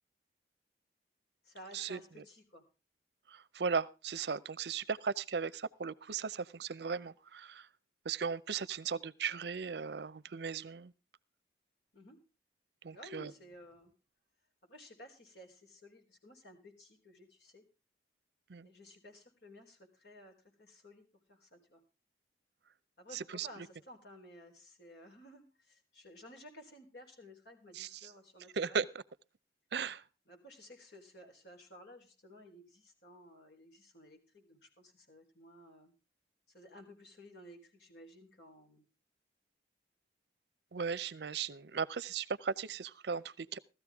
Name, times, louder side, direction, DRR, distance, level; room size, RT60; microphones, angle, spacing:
voice 1, 1.4-2.6 11.9-12.2 12.9-13.9 14.7-17.6 18.6-21.8 23.0-28.8 30.3-35.9 36.5-38.8, left 1 dB, 70° left, 3.9 m, -55 dB
voice 2, 3.3-7.7 8.0-10.9 12.8-13.3 18.5-18.7 23.1-23.5 27.7-28.1 28.6-28.9 29.7-30.0 40.7-43.6, right 6 dB, 70° right, 0.6 m, -37 dB
16.5 x 13.5 x 3.6 m
head